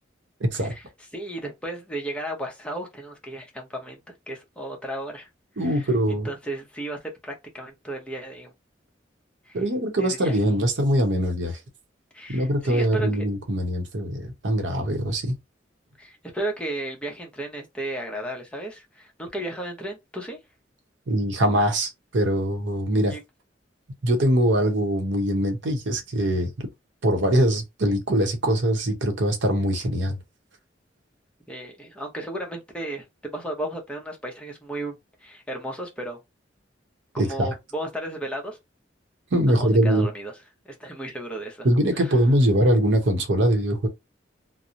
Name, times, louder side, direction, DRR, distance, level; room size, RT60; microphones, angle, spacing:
voice 1, 0.4-0.7 5.6-6.3 9.5-11.6 12.3-15.4 21.1-23.1 24.0-26.7 27.0-30.2 37.2-37.5 39.3-40.1 41.6-43.9, right 1 dB, 75° right, 0.7 m, -22 dB
voice 2, 1.1-5.3 5.6-8.5 9.5-9.6 10.0-10.4 12.1-13.3 16.0-20.4 23.1-23.2 31.5-36.2 37.1-38.6 39.5-40.3 40.6-41.7 42.0-42.1, right 1 dB, 5° left, 0.7 m, -34 dB
2.8 x 2.0 x 2.4 m
head